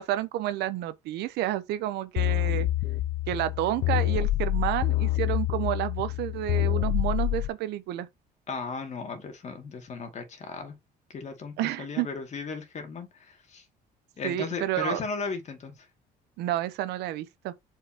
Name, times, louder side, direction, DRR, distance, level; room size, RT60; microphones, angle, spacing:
voice 1, 0.0-2.7 3.3-8.1 11.6-12.1 14.2-15.0 16.4-17.5, right 14 dB, 85° right, 0.9 m, -30 dB
sound 1, 2.2-7.5, left 16 dB, 70° left, 0.5 m, -27 dB
voice 2, 8.5-10.7 11.1-13.6 14.2-15.9, left 4 dB, 45° left, 2.3 m, -36 dB
6.6 x 4.8 x 2.9 m
cardioid pair, 110°, 17 cm